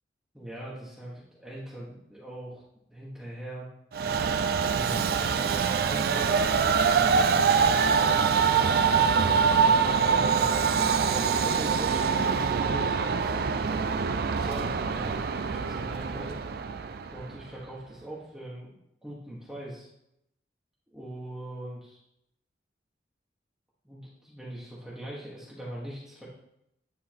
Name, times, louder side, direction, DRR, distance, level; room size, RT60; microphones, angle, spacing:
voice 1, 0.3-2.6 2.9-3.7 4.6-6.4 6.8-13.9 14.3-16.4 17.1-18.7 19.0-19.9 20.9-22.0 23.8-26.3, right 1 dB, 5° right, -7 dB, 1.2 m, -41 dB
Train, 3.9-17.4, right 6 dB, 55° right, 0.4 m, -24 dB
9.5 x 3.7 x 4.5 m, 0.79 s
head